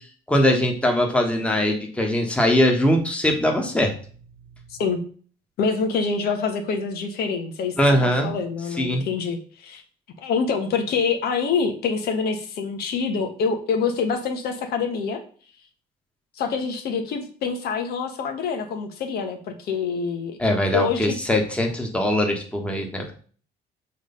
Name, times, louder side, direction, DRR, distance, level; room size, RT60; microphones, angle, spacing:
voice 1, 0.3-3.9 7.8-8.3 8.8-9.0 20.4-23.1, left 1 dB, 5° left, 1 dB, 1.4 m, -21 dB
voice 2, 5.6-7.7 8.0-9.8 10.2-15.2 16.3-20.4 20.7-21.2, left 5 dB, 70° left, 5 dB, 1.2 m, -26 dB
6.4 x 3.3 x 5.3 m, 0.43 s
cardioid pair, 110°, 17 cm